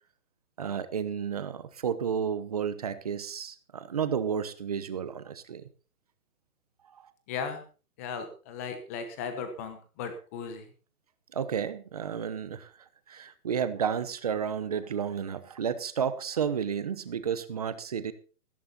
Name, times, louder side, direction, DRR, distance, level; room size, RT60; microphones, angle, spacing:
voice 1, 0.6-5.6 6.9-7.0 11.3-12.7 13.1-18.1, right 7 dB, 25° right, 13 dB, 0.9 m, -32 dB
voice 2, 7.3-7.6 8.0-10.7, left 6 dB, 10° left, 8 dB, 1.0 m, -36 dB
15.5 x 13.5 x 4.2 m, 0.36 s
hypercardioid pair, 175°, 44 cm